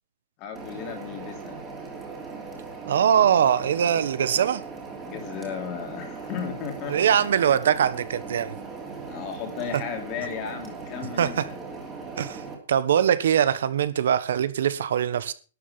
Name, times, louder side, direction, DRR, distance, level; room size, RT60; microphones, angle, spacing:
voice 1, 0.4-1.6 5.0-7.0 9.0-11.6, left 7 dB, 25° left, 3.0 m, -35 dB
sound 1, 0.5-12.5, right 4 dB, 10° right, 3.0 m, -39 dB
voice 2, 2.9-4.6 6.9-8.6 11.2-11.5 12.2-15.3, right 9 dB, 65° right, 1.3 m, -22 dB
12.5 x 10.5 x 5.8 m
hypercardioid pair, 180°, 0 cm